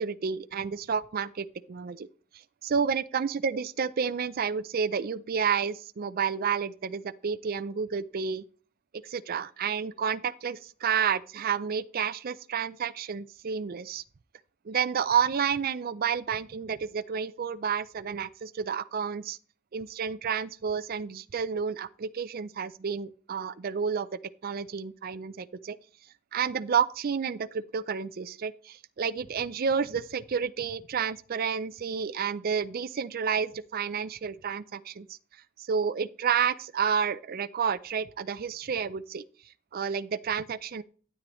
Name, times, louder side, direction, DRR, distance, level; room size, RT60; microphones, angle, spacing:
voice 1, 0.0-2.1 2.6-8.4 9.0-14.0 14.7-19.4 19.7-24.1 24.4-25.8 26.3-35.2 35.6-39.2 39.7-40.8, right 6 dB, 45° right, 0.4 m, -30 dB
12.5 x 8.4 x 3.1 m
head